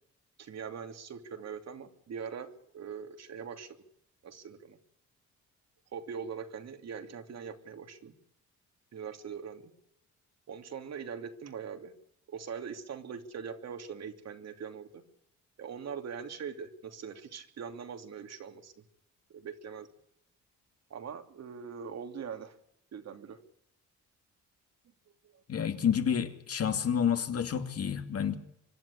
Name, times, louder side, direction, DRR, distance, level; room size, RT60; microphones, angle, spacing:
voice 1, 0.4-3.8 4.2-4.8 5.9-8.1 8.9-9.7 10.5-11.9 12.3-15.0 15.6-18.7 19.3-19.9 20.9-22.5 22.9-23.4 25.2-25.3, right 6 dB, 60° right, 2.9 m, -42 dB
voice 2, 25.5-28.4, left 8 dB, 50° left, 2.7 m, -29 dB
25.0 x 11.5 x 9.8 m
cardioid pair, 90°, 30 cm